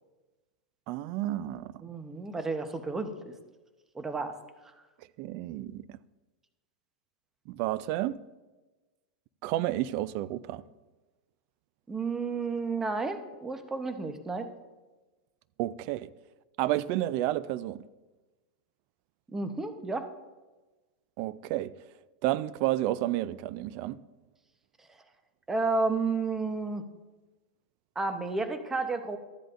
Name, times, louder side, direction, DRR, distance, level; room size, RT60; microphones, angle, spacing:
voice 1, 0.9-1.7 5.2-6.0 7.5-8.2 9.4-10.6 15.6-16.1 16.6-17.8 21.2-21.8 22.2-24.0, right 15 dB, 50° right, 0.4 m, -31 dB
voice 2, 1.8-3.3 3.9-4.4 11.9-14.5 19.3-20.1 25.5-26.8 28.0-29.2, right 3 dB, 10° right, 0.8 m, -31 dB
14.0 x 10.0 x 2.5 m
supercardioid pair, 140°, 4 cm